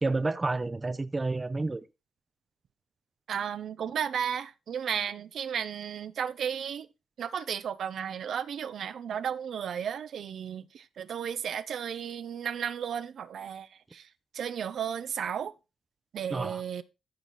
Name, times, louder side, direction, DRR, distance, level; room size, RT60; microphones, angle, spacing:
voice 1, 0.0-1.8 16.3-16.6, right 3 dB, 25° right, 0.7 m, -30 dB
voice 2, 3.3-6.9 7.2-15.5 16.1-16.8, right 8 dB, 70° right, 0.7 m, -34 dB
14.0 x 4.8 x 4.1 m
cardioid pair, 85°, 0 cm